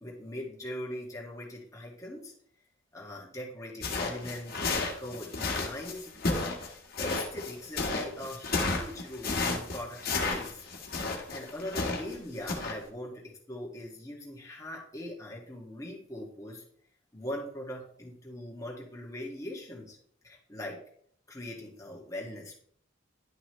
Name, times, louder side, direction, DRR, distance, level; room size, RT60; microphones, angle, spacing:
voice 1, 0.0-2.3 2.9-6.6 7.0-10.7 11.0-16.6 17.1-20.0 20.2-20.8 21.3-22.5, left 1 dB, 15° left, -3 dB, 2.2 m, -41 dB
sound 1, 3.8-12.2 12.5-12.7, left 3 dB, 50° left, 1.7 m, -32 dB
11.0 x 5.8 x 3.3 m, 0.62 s
head